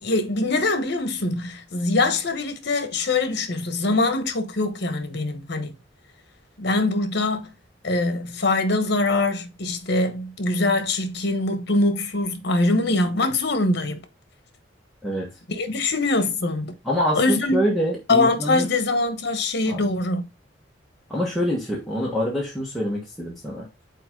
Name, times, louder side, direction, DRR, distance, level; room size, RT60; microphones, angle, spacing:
voice 1, 0.0-5.7 6.6-7.5 7.8-14.0 15.5-16.7 17.1-17.6 18.1-20.3, left 2 dB, 60° left, 1.1 m, -23 dB
voice 2, 16.8-18.7 19.7-19.8 21.1-23.6, equal, ahead, 1.5 m, -25 dB
5.8 x 4.4 x 3.8 m
head